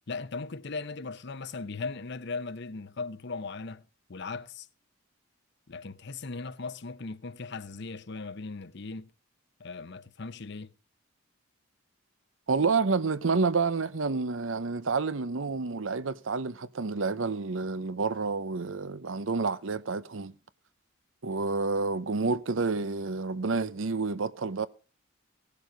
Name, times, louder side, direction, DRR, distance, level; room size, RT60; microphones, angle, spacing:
voice 1, 0.1-3.8 4.1-4.7 5.7-9.1 9.6-10.7, left 4 dB, 60° left, 0.8 m, -38 dB
voice 2, 12.5-20.3 21.2-24.7, right 4 dB, 75° right, 0.8 m, -29 dB
17.5 x 6.9 x 5.1 m
head